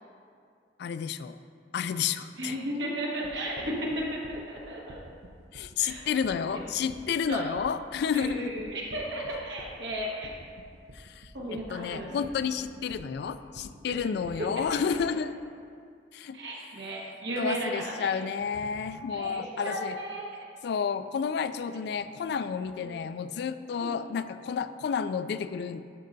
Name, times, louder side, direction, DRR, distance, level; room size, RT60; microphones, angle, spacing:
voice 1, 0.8-1.4 1.7-2.5 5.5-8.5 10.9-11.3 11.7-15.4 16.1-16.4 17.4-20.0 20.6-25.8, left 6 dB, 65° left, 12 dB, 0.3 m, -31 dB
voice 2, 2.4-5.0 5.8-6.0 6.3-6.6 7.3-7.5 8.1-10.3 11.3-12.3 13.9-14.1 14.4-14.8 16.3-18.1 19.1-20.4 22.8-23.0 23.8-24.0, right 1 dB, 80° right, -3 dB, 1.5 m, -35 dB
sound 1, 3.2-15.2, right 1 dB, 60° right, 0.5 m, -50 dB
11.5 x 5.5 x 2.7 m, 2.3 s
head